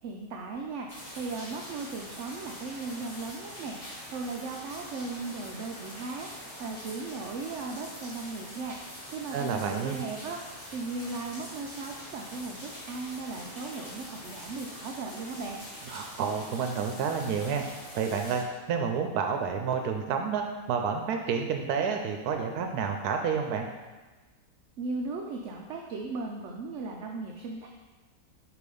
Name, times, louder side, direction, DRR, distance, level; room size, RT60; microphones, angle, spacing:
voice 1, 0.0-15.6 24.8-27.7, right 3 dB, 65° right, 1 dB, 0.8 m, -37 dB
sound 1, 0.9-18.4, equal, 25° left, 1.8 m, -44 dB
voice 2, 9.3-10.0 15.9-17.6 17.9-18.4 18.7-23.7, right 6 dB, 85° right, 4 dB, 1.1 m, -29 dB
4.9 x 4.8 x 5.3 m, 1.2 s
omnidirectional pair, 1.6 m